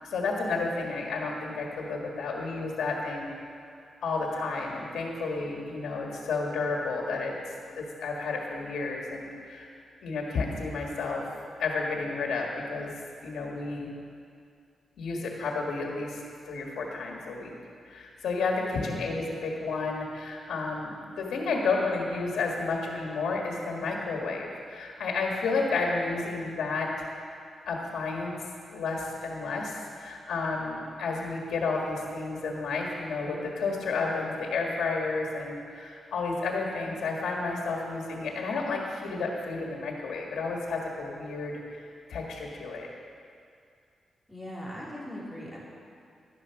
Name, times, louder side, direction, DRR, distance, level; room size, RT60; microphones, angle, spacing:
voice 1, 0.0-3.3 4.0-9.7 10.0-12.9 13.2-13.9 15.0-16.2 16.4-17.5 17.8-26.9 27.6-28.3 28.7-42.9, left 3 dB, 90° left, -1 dB, 1.8 m, -31 dB
voice 2, 44.3-45.6, equal, 5° right, -6 dB, 3.3 m, -39 dB
12.0 x 10.0 x 5.9 m, 2.4 s
cardioid pair, 115°, 0 cm